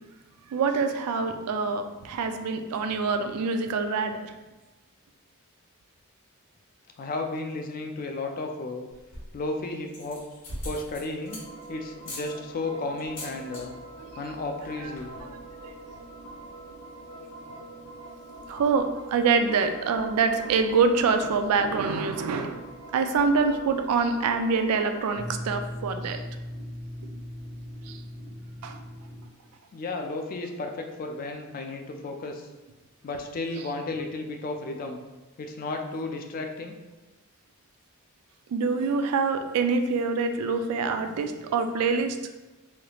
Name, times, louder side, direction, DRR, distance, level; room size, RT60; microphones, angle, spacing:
voice 1, 0.5-4.3 14.0-14.3 14.8-14.9 15.3-15.7 18.5-22.6 22.9-26.2 27.9-28.0 28.6-28.8 38.5-42.2, right 4 dB, 85° right, 7 dB, 0.3 m, -25 dB
voice 2, 7.0-8.9 9.3-10.2 10.6-13.7 14.2-15.1 29.7-32.4 33.0-35.0 35.4-36.8, left 2 dB, 40° left, 4 dB, 0.3 m, -33 dB
sound 1, 9.0-9.4 9.9-11.7 12.0-12.3 13.0-13.6 13.9-14.2 14.5-14.6 14.8-15.2, left 1 dB, 55° left, 1.2 m, -40 dB
sound 2, 11.3-29.3, right 1 dB, 85° left, 0.7 m, -42 dB
3.1 x 2.3 x 2.9 m, 1.1 s
head